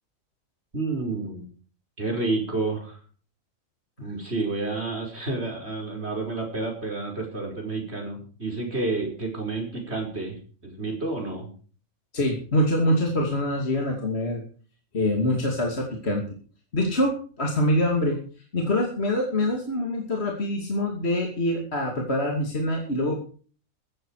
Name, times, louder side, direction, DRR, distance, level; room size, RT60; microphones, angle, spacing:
voice 1, 0.7-1.5 2.0-3.0 4.0-10.4 10.6-11.5, right 3 dB, 45° right, 2 dB, 5.6 m, -30 dB
voice 2, 12.1-14.4 14.9-16.2 16.7-18.2 18.5-23.2, left 1 dB, 45° left, 1 dB, 2.9 m, -25 dB
15.5 x 13.0 x 4.9 m, 0.41 s
omnidirectional pair, 1.5 m